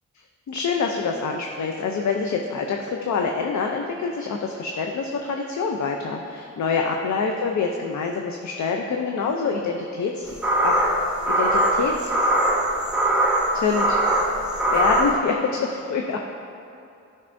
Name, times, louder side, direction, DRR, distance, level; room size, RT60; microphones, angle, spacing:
voice 1, 0.5-10.3 10.6-10.8 11.3-12.1 13.5-14.0 14.7-16.2, left 5 dB, 70° left, 2 dB, 0.6 m, -26 dB
sound 1, 10.3-15.1, right 1 dB, 5° right, 1.4 m, -21 dB
12.0 x 5.5 x 2.6 m, 2.6 s
cardioid pair, 65°, 30 cm